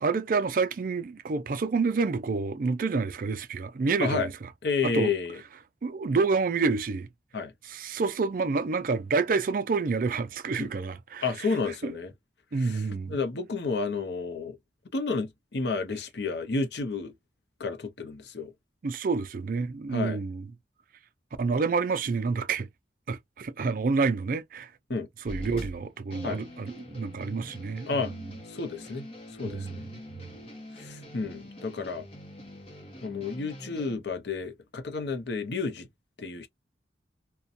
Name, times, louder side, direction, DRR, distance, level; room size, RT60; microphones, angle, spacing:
voice 1, 0.0-4.3 4.8-5.1 5.8-7.1 7.7-11.5 11.8-11.9 12.5-13.2 18.8-20.4 21.4-22.7 23.1-24.7 25.2-28.1 29.4-29.8 30.2-30.3, right 4 dB, 50° right, 0.4 m, -28 dB
voice 2, 4.6-5.4 7.3-7.5 10.6-10.7 11.2-12.1 12.5-14.6 14.9-17.1 17.6-18.5 19.9-20.2 24.9-25.1 26.2-26.4 27.9-28.1 28.5-29.1 29.4-29.9 30.8-32.1 33.0-35.9 36.2-36.5, left 4 dB, 70° left, 0.6 m, -31 dB
sound 1, 25.2-34.0, left 1 dB, 30° left, 0.8 m, -44 dB
2.7 x 2.2 x 2.4 m
head